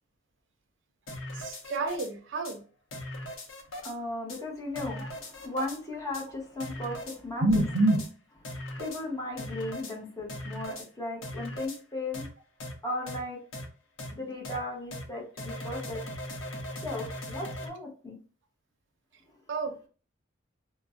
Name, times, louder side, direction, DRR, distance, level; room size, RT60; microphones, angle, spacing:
sound 1, 1.1-2.1 2.4-2.5 2.9-3.9 4.3-4.4 4.8-5.8 6.1-6.2 6.6-7.2 7.5-8.1 8.4-9.0 9.4-9.9 10.3-10.9 11.2-11.8 12.1-12.3 12.6-12.7 13.1-13.2 13.5-13.7 14.0-14.1 14.4-14.6 14.9-15.0 15.4-17.7, left 1 dB, 85° left, 0.7 m, -39 dB
voice 1, 1.3-2.6 5.0-5.1 7.4-8.0 19.5-19.9, right 2 dB, 70° right, 0.5 m, -27 dB
voice 2, 3.8-7.4 8.8-12.3 12.8-13.4 14.1-16.0 16.8-18.2, left 2 dB, 20° left, 0.7 m, -36 dB
2.4 x 2.0 x 3.6 m
head